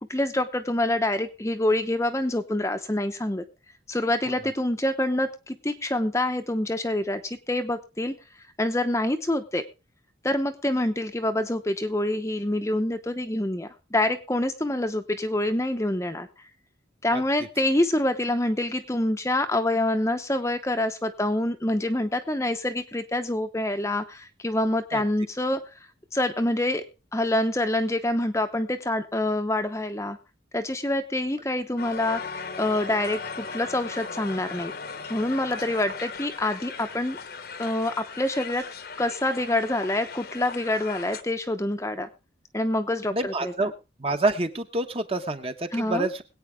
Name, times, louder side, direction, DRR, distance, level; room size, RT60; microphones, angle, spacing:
voice 1, 0.1-3.4 3.9-8.2 8.6-9.6 10.2-16.3 17.0-25.6 26.1-26.8 27.1-30.2 30.5-34.7 35.1-37.2 37.6-38.7 39.0-42.1 42.5-43.7 45.7-46.1, left 1 dB, 15° left, 7 dB, 0.8 m, -26 dB
Crowd, 31.8-41.2, left 5 dB, 50° left, 1.0 m, -38 dB
voice 2, 43.1-43.7 44.0-46.2, right 2 dB, 30° right, 7 dB, 1.1 m, -27 dB
21.5 x 8.9 x 3.5 m, 0.30 s
head